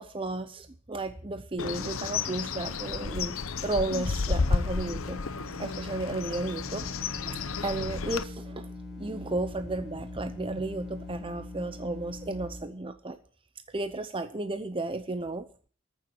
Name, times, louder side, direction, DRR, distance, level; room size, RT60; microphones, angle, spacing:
voice 1, 0.0-5.2 5.6-13.2 13.7-15.5, right 2 dB, 25° right, 9 dB, 0.8 m, -34 dB
Bird, 1.6-8.2, left 4 dB, 75° left, 0.8 m, -32 dB
sound 1, 4.7-12.7, left 2 dB, ahead, 4.2 m, -42 dB
14.0 x 7.0 x 9.4 m, 0.44 s
head